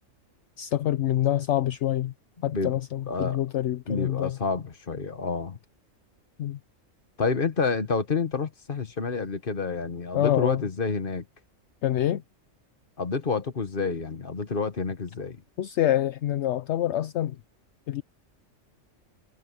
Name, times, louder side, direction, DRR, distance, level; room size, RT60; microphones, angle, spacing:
voice 1, 0.6-2.1 2.4-4.4 6.4-6.6 10.1-10.6 11.8-12.2 15.6-17.4 17.9-18.0, left 12 dB, 65° left, 0.9 m, -26 dB
voice 2, 2.4-2.7 3.1-3.4 3.9-5.6 7.2-11.2 13.0-15.4, left 4 dB, 45° left, 1.5 m, -29 dB
omnidirectional pair, 1.4 m